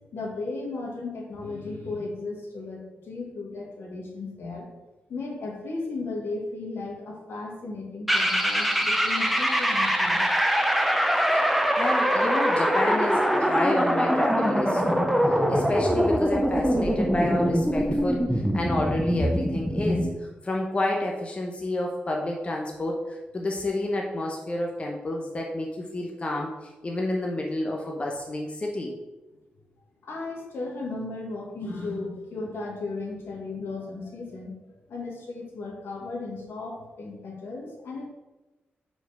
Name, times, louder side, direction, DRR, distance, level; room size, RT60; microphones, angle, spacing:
voice 1, 0.1-4.7 5.1-10.3 30.0-34.5 34.9-38.1, left 3 dB, 75° left, -1 dB, 1.7 m, -35 dB
sound 1, 8.1-20.1, equal, ahead, 0.7 m, -23 dB
voice 2, 11.3-15.1 15.5-20.1 20.4-23.0 23.3-26.5 26.8-28.9, left 1 dB, 30° left, 0 dB, 0.8 m, -29 dB
4.6 x 4.6 x 5.6 m, 1.1 s
cardioid pair, 95°, 4 cm